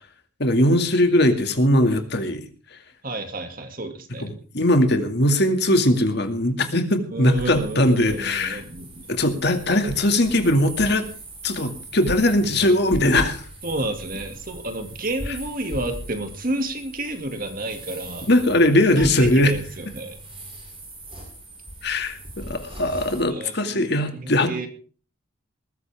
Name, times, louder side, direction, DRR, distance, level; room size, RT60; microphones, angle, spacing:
voice 1, 0.4-2.4 4.5-8.6 9.1-11.1 11.4-13.4 18.3-19.5 21.8-24.7, left 1 dB, 55° left, 6 dB, 2.3 m, -20 dB
voice 2, 3.0-4.3 7.1-9.1 13.6-18.3 18.7-20.2 23.3-24.7, right 2 dB, 45° right, 6 dB, 2.3 m, -31 dB
sound 1, 7.3-23.2, right 1 dB, 25° right, 7.4 m, -38 dB
20.5 x 14.0 x 3.6 m, 0.38 s
head